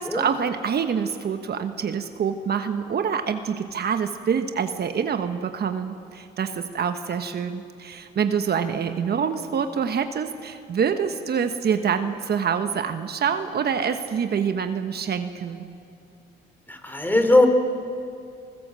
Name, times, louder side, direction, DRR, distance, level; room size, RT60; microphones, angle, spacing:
voice 1, 0.0-15.7, right 7 dB, 55° right, 7 dB, 1.2 m, -26 dB
voice 2, 16.7-17.5, left 2 dB, 10° left, 6 dB, 3.2 m, -19 dB
27.0 x 19.5 x 7.6 m, 2.4 s
cardioid pair, 90°, 20 cm